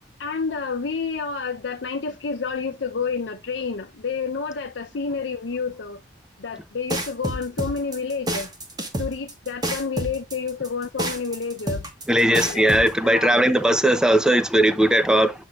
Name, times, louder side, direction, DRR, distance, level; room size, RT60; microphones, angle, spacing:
voice 1, 0.2-6.0 6.4-8.5 9.0-11.8 12.3-12.8 13.0-13.5, left 5 dB, 85° left, 0.7 m, -29 dB
sound 1, 6.9-12.9, right 1 dB, 25° right, 1.4 m, -28 dB
voice 2, 12.1-15.3, right 1 dB, 5° right, 0.6 m, -18 dB
7.8 x 6.0 x 2.4 m
head